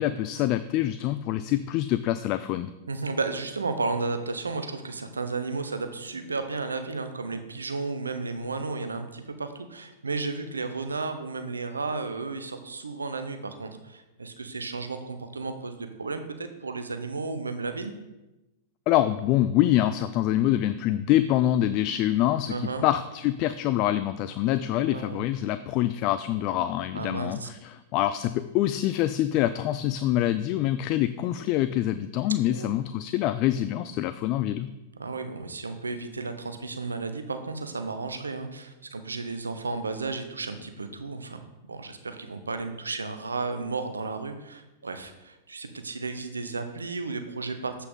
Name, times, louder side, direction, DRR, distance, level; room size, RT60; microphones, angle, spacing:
voice 1, 0.0-2.7 18.9-34.7, left 13 dB, 45° left, 12 dB, 0.3 m, -25 dB
voice 2, 2.9-17.9 22.5-22.9 24.7-25.2 26.9-27.5 32.5-32.7 35.0-41.4 41.7-47.8, right 3 dB, 90° right, 8 dB, 0.7 m, -33 dB
8.1 x 5.6 x 3.8 m, 1.0 s
hypercardioid pair, 100°, 0 cm